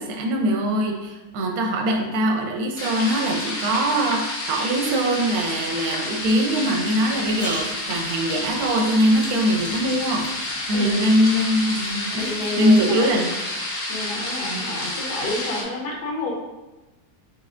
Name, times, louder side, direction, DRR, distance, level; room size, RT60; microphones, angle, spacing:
voice 1, 0.0-10.3 10.7-13.3, equal, 70° right, 2 dB, 1.0 m, -22 dB
sound 1, 2.8-15.6, left 2 dB, 55° left, 0.7 m, -29 dB
sound 2, 7.0-13.1, right 1 dB, 15° left, 0.5 m, -41 dB
voice 2, 10.7-11.1 12.2-13.2 13.7-16.3, left 2 dB, 75° left, -2 dB, 1.4 m, -30 dB
4.5 x 3.2 x 2.4 m, 1.1 s
omnidirectional pair, 1.7 m